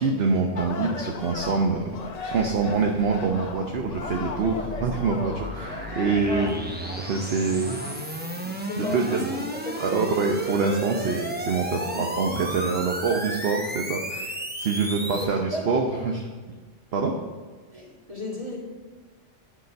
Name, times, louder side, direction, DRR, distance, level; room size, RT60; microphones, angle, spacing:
voice 1, 0.0-6.6 7.0-8.0 8.8-9.3 9.8-16.2 16.9-17.1, right 4 dB, 60° right, 2 dB, 1.0 m, -25 dB
sound 1, 0.6-7.9, left 4 dB, 40° left, 0.7 m, -38 dB
sound 2, 2.0-15.2, equal, 10° right, 0.8 m, -34 dB
voice 2, 6.3-6.6 8.7-10.0 11.8-12.4 15.0-16.0 17.7-18.6, left 1 dB, 30° right, -3 dB, 2.3 m, -35 dB
10.5 x 6.2 x 5.3 m, 1.4 s
omnidirectional pair, 1.2 m